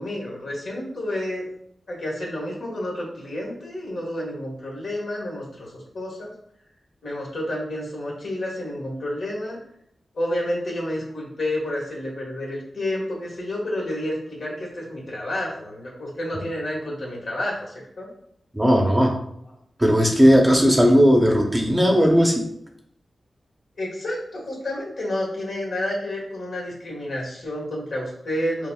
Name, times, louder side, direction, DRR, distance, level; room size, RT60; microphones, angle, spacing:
voice 1, 0.0-1.5 1.9-6.3 7.0-9.6 10.1-18.1 23.8-28.7, left 1 dB, 70° left, -3 dB, 1.6 m, -30 dB
voice 2, 18.5-19.1 19.8-22.4, equal, 15° right, 1 dB, 0.7 m, -16 dB
7.0 x 2.4 x 2.3 m, 0.72 s
wide cardioid pair, 140°, 0 cm